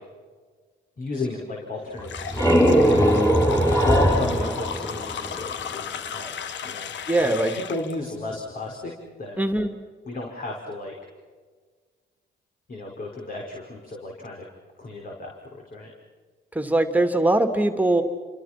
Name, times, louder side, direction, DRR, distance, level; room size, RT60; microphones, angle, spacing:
voice 1, 1.0-2.5 3.6-6.3 6.6-6.9 7.5-8.9 9.2-9.5 10.1-10.9 12.7-14.4 14.8-15.9, left 2 dB, 45° left, -1 dB, 5.2 m, -33 dB
sound 1, 2.0-7.9, left 8 dB, 70° left, 1.4 m, -34 dB
sound 2, 2.0-5.7, equal, 15° left, 5.1 m, -20 dB
voice 2, 7.1-7.5 9.4-9.7 16.5-18.0, right 2 dB, 10° right, 6 dB, 2.7 m, -21 dB
30.0 x 26.5 x 6.0 m, 1.5 s
cardioid pair, 90°, 20 cm